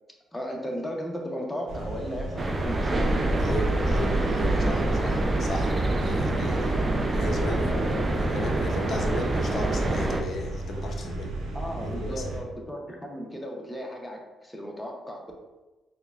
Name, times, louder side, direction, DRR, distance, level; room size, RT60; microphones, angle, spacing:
voice 1, 0.3-2.9 7.5-8.0 11.5-15.2, equal, 10° left, 0 dB, 0.7 m, -35 dB
sound 1, 1.7-12.4, right 1 dB, 85° right, 0.5 m, -35 dB
sound 2, 2.4-10.2, right 2 dB, 30° right, 0.3 m, -26 dB
voice 2, 3.4-5.7 6.0-6.8 7.1-11.3 11.8-12.2, left 1 dB, 55° left, 3 dB, 0.5 m, -34 dB
4.4 x 2.2 x 2.3 m, 1.1 s
cardioid pair, 90°, 0 cm